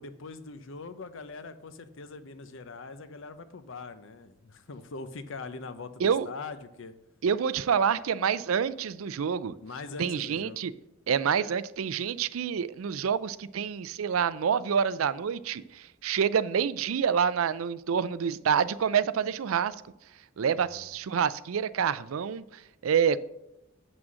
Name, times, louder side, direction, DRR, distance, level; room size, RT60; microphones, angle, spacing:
voice 1, 0.0-6.9 9.6-10.6 20.5-20.8, left 4 dB, 65° left, 0.7 m, -42 dB
voice 2, 7.2-9.6 10.0-10.7 11.1-19.8 20.4-23.2, right 7 dB, 80° right, 0.4 m, -27 dB
7.6 x 6.1 x 6.2 m
head